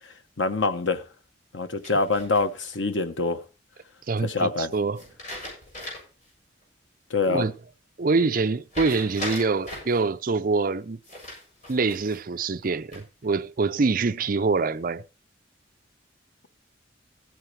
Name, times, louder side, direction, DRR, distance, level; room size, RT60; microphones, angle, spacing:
voice 1, 0.4-1.0 1.5-3.4 4.2-4.7 7.1-7.5, left 3 dB, 85° left, 1.1 m, -25 dB
sound 1, 1.8-2.8 5.0-6.2 6.6-6.7 8.7-10.0 11.0-12.2 12.7-13.3, left 1 dB, 40° left, 7.5 m, -38 dB
voice 2, 4.1-5.0 7.3-7.5 8.0-11.0 11.7-15.0, right 4 dB, 50° right, 0.5 m, -25 dB
15.5 x 9.4 x 3.2 m
head